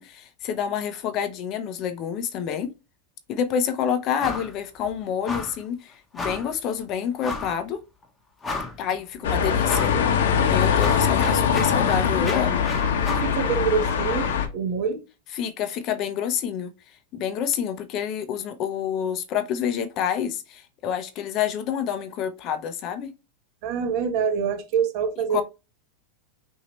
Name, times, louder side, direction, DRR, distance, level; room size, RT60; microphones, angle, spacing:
voice 1, 0.0-2.7 3.3-7.8 8.8-9.9 10.4-12.6 15.4-16.7 17.1-23.1 25.3-25.4, left 8 dB, 35° left, 0.7 m, -28 dB
sound 1, 4.2-4.5 4.8-4.9 5.2-5.6 6.2-6.5 7.2-7.6 8.0-8.1 8.4-8.9 9.6-10.0 10.4-13.3, left 3 dB, 15° left, 1.0 m, -33 dB
sound 2, 9.2-14.5, left 7 dB, 85° left, 1.1 m, -22 dB
voice 2, 13.1-15.0 23.6-25.4, right 6 dB, 45° right, 1.1 m, -25 dB
5.9 x 2.8 x 3.1 m
supercardioid pair, 155°, 0 cm